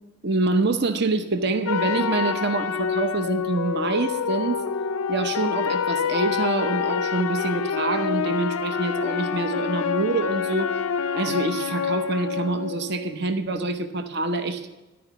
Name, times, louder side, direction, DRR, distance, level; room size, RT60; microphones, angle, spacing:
voice 1, 0.2-4.7 5.1-10.7 11.1-14.7, right 3 dB, 50° right, 8 dB, 0.7 m, -26 dB
sound 1, 1.7-13.3, left 6 dB, 75° left, 0.5 m, -27 dB
12.0 x 4.9 x 8.0 m, 1.1 s
head